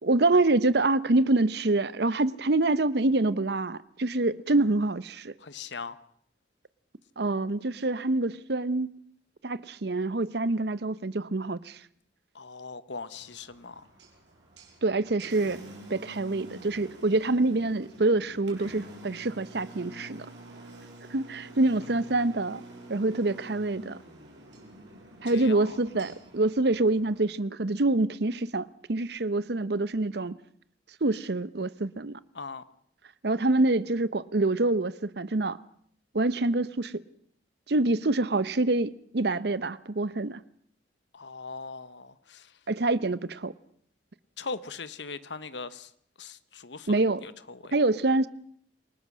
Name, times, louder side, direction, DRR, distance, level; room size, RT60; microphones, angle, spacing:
voice 1, 0.0-5.3 7.2-8.9 9.4-11.8 14.8-15.6 15.9-20.3 21.1-22.6 22.9-24.0 25.2-30.4 31.0-32.2 33.2-35.6 36.1-37.0 37.7-40.4 42.7-43.5 46.9-47.2 47.7-48.3, right 2 dB, 65° right, 0.8 m, -26 dB
voice 2, 5.4-6.0 12.3-13.8 25.3-25.7 32.3-32.6 41.1-42.5 44.4-45.9 46.2-47.7, left 4 dB, 85° left, 1.2 m, -40 dB
Engine, 13.1-27.2, right 1 dB, 85° right, 6.4 m, -48 dB
28.0 x 19.0 x 6.3 m
head